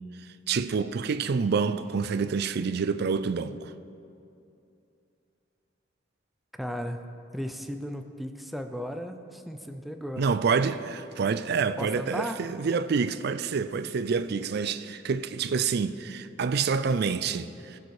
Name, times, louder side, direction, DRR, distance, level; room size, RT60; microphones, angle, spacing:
voice 1, 0.5-3.7 10.2-17.8, right 5 dB, 60° right, 0.4 m, -27 dB
voice 2, 6.6-7.0 7.3-10.2 11.8-12.4, equal, ahead, 0.5 m, -35 dB
16.0 x 6.9 x 4.8 m
head